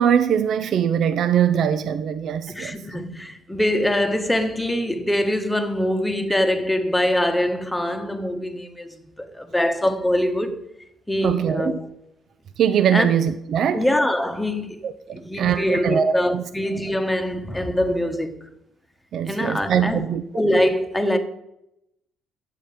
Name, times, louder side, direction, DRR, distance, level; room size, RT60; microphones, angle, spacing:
voice 1, 0.0-2.7 11.2-11.7 12.6-13.9 14.8-16.4 19.1-20.2, right 8 dB, 60° right, 0.5 m, -22 dB
voice 2, 2.5-10.6 11.1-11.9 12.9-13.1 13.7-14.8 15.1-18.4 19.2-20.0 20.3-21.2, left 1 dB, 10° left, 1.2 m, -23 dB
9.2 x 6.5 x 5.2 m
supercardioid pair, 65°, 0 cm